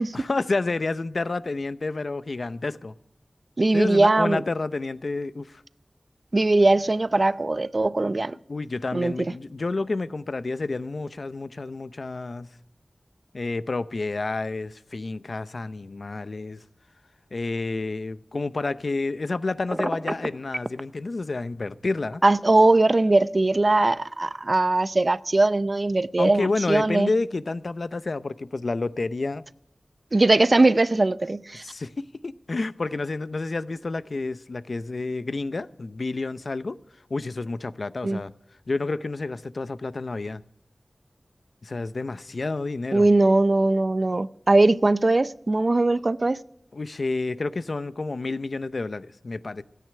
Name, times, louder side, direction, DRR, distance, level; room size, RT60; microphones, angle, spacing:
voice 1, 0.1-2.9 3.7-5.6 8.5-12.5 13.3-16.6 17.3-22.2 26.2-29.4 31.6-36.8 37.1-38.3 38.7-40.4 41.6-43.1 46.7-49.6, left 3 dB, 70° left, 0.6 m, -29 dB
voice 2, 3.6-4.4 6.3-8.4 8.9-9.3 22.2-27.1 30.1-31.6 38.0-38.2 42.9-46.4, right 2 dB, 50° right, 0.5 m, -20 dB
Telephone, 19.7-20.8, right 1 dB, 20° right, 0.7 m, -28 dB
17.0 x 9.3 x 7.7 m
wide cardioid pair, 50°, 0 cm